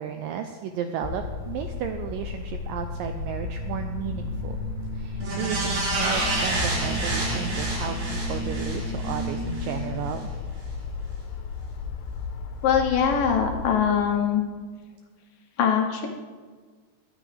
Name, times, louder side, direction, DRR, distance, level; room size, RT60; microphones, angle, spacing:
voice 1, 0.0-4.6 4.9-10.3, right 8 dB, 90° right, 6 dB, 1.9 m, -33 dB
sound 1, 1.0-13.7, left 5 dB, 90° left, 3.0 m, -34 dB
sound 2, 2.8-10.2, right 2 dB, 50° right, 2.7 m, -36 dB
sound 3, 5.2-9.7 10.1-10.2, right 2 dB, 70° right, 6.2 m, -29 dB
voice 2, 12.6-14.4 15.6-16.1, left 7 dB, 70° left, 3 dB, 2.4 m, -22 dB
21.0 x 9.0 x 3.3 m, 1.5 s
omnidirectional pair, 4.6 m